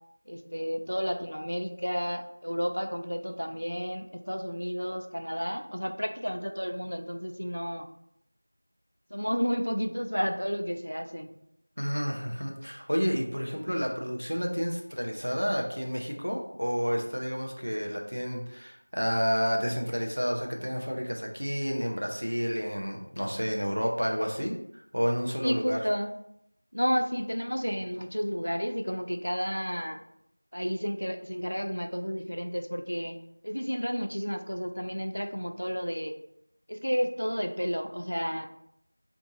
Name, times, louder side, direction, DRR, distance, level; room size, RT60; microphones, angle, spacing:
voice 1, 0.3-7.9 9.1-11.4 25.4-26.2 26.7-30.0 30.5-33.2 33.4-36.2 36.7-38.5, equal, 55° left, 5 dB, 0.3 m, -31 dB
voice 2, 11.8-25.8, equal, 70° right, 1 dB, 0.6 m, -30 dB
2.6 x 2.3 x 2.8 m, 0.77 s
figure-of-eight pair, 180°, 0 cm